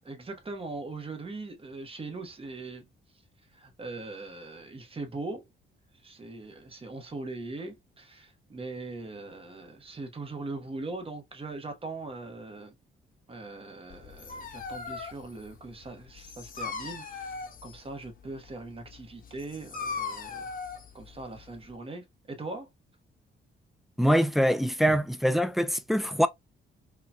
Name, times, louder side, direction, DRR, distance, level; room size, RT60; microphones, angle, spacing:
voice 1, 0.0-2.9 3.5-5.5 6.0-12.7 13.3-20.5 20.9-22.7 24.9-25.0, right 3 dB, 30° right, 1.1 m, -40 dB
Dog, 13.9-21.7, left 5 dB, 45° left, 1.1 m, -40 dB
voice 2, 24.0-26.3, equal, ahead, 0.4 m, -24 dB
3.7 x 2.8 x 2.2 m
cardioid pair, 90°, 20 cm